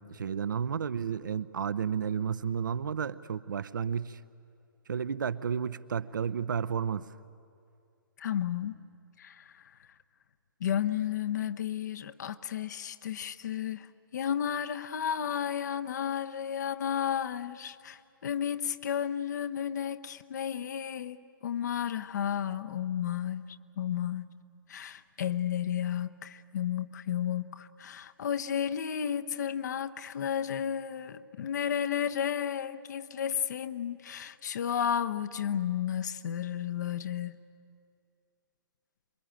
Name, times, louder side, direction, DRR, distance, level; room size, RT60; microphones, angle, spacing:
voice 1, 0.0-4.2 4.9-7.1, right 7 dB, 60° right, 0.7 m, -32 dB
voice 2, 8.2-8.8 9.2-9.6 10.6-13.9 14.1-23.5 23.8-24.3 24.7-37.4, left 9 dB, 50° left, 0.9 m, -32 dB
27.0 x 22.0 x 9.0 m
figure-of-eight pair, 120°, 12 cm